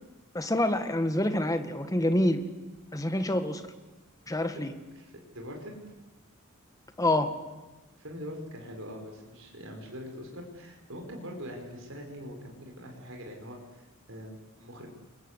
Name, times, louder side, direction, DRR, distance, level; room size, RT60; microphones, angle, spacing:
voice 1, 0.3-2.4 2.9-3.6 4.3-4.7 7.0-7.3, left 1 dB, 15° left, 8 dB, 1.6 m, -27 dB
voice 2, 4.9-5.8 8.0-14.9, equal, 65° right, 2 dB, 5.0 m, -43 dB
29.5 x 22.0 x 8.1 m, 1.1 s
head